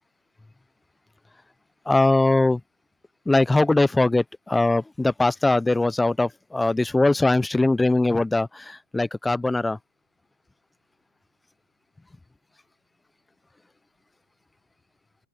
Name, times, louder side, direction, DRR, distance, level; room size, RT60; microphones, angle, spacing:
voice 1, 1.9-2.6 3.3-9.8, left 2 dB, 5° left, 0.5 m, -21 dB
open air
hypercardioid pair, 120°, 0 cm